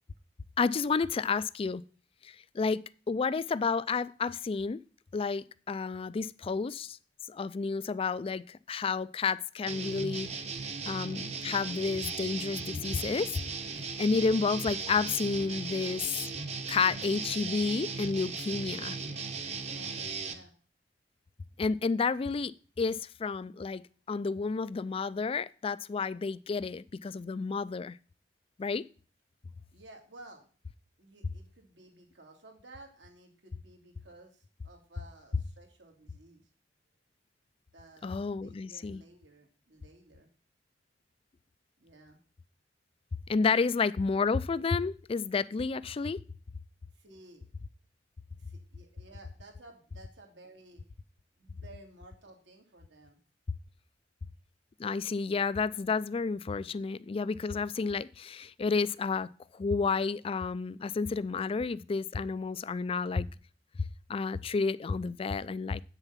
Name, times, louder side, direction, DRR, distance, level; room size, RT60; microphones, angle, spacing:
voice 1, 0.6-1.8 2.2-4.8 5.1-7.0 7.3-10.3 10.8-13.3 14.0-16.1 16.7-19.0 21.6-22.5 22.8-23.8 24.1-28.0 28.6-28.8 38.0-39.0 43.3-46.2 54.8-63.3 64.1-65.8, left 4 dB, 30° left, 0.3 m, -31 dB
sound 1, 9.7-20.3, right 5 dB, 40° right, 1.1 m, -37 dB
voice 2, 19.6-20.5 29.7-30.5 31.0-36.4 37.7-40.3 41.8-42.2 46.9-47.5 48.4-50.8 51.4-53.2, right 2 dB, 80° right, 2.5 m, -55 dB
8.2 x 6.8 x 5.7 m
head